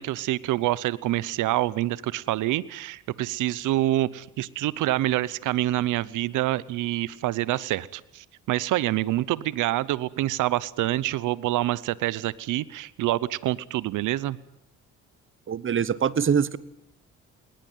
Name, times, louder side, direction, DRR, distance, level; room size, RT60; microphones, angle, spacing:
voice 1, 0.0-14.4, right 15 dB, 85° right, 20 dB, 0.8 m, -26 dB
voice 2, 15.5-16.6, right 7 dB, 40° right, 19 dB, 1.1 m, -23 dB
20.5 x 19.5 x 9.2 m, 0.77 s
cardioid pair, 90°, 30 cm